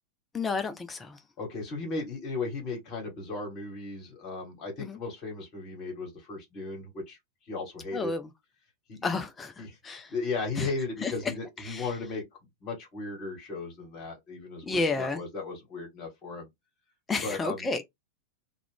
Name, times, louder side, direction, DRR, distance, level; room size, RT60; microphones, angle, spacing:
voice 1, 0.3-1.2 4.8-5.0 7.9-8.2 9.0-10.1 10.6-10.7 11.0-11.1 11.7-11.9 14.7-15.2 17.1-17.8, left 3 dB, 15° left, 0.4 m, -31 dB
voice 2, 1.4-7.2 7.4-8.1 8.9-9.2 9.6-12.2 12.6-16.5 17.2-17.7, left 3 dB, 40° left, 1.3 m, -36 dB
2.3 x 2.2 x 3.4 m
figure-of-eight pair, 90°, 0 cm